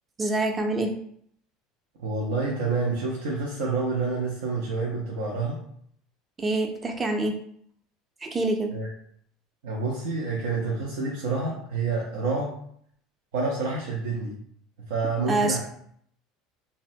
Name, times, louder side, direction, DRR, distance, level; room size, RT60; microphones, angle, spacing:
voice 1, 0.2-1.0 6.4-7.4 8.2-8.7 15.3-15.6, right 2 dB, 25° right, 4 dB, 0.5 m, -26 dB
voice 2, 2.0-5.6 8.7-8.9 9.6-12.5 13.3-14.4 14.9-15.6, right 3 dB, 80° right, -3 dB, 0.6 m, -28 dB
2.6 x 2.1 x 2.7 m, 0.65 s
supercardioid pair, 100°, 0 cm